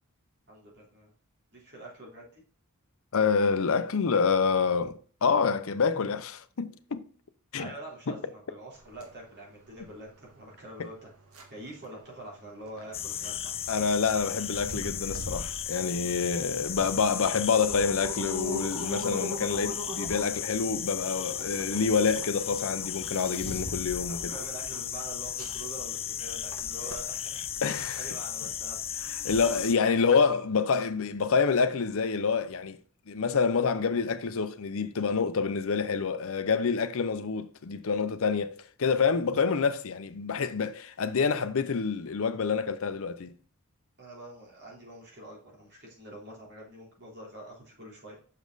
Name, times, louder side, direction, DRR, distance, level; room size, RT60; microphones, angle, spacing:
voice 1, 0.5-1.1 1.5-2.4 7.6-11.1 11.5-13.5 24.1-27.5 28.0-28.8 44.0-48.2, right 1 dB, 50° right, 3.4 m, -45 dB
voice 2, 3.1-7.1 7.5-7.7 8.1-8.2 10.8-10.9 13.7-24.3 27.6-28.1 29.2-32.8 33.1-43.3, left 5 dB, 65° left, 0.6 m, -27 dB
sound 1, 8.7-27.6, right 1 dB, 70° right, 1.4 m, -42 dB
sound 2, 12.9-29.7, left 9 dB, 25° left, 0.4 m, -35 dB
6.5 x 5.2 x 3.9 m
head